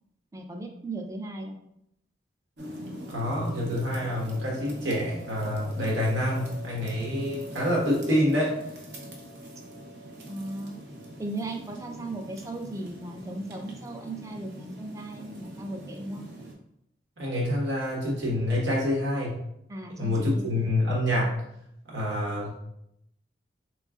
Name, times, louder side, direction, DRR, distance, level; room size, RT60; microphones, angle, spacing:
voice 1, 0.3-1.6 10.3-10.8 11.2-16.2 19.7-20.7, right 2 dB, 15° right, 3 dB, 0.4 m, -37 dB
sound 1, 2.6-16.5, equal, 65° right, 0.8 m, -43 dB
voice 2, 3.1-8.5 17.2-19.4 20.0-21.4 21.9-22.6, left 1 dB, 85° right, -4 dB, 1.3 m, -27 dB
3.9 x 3.1 x 2.3 m, 0.77 s
head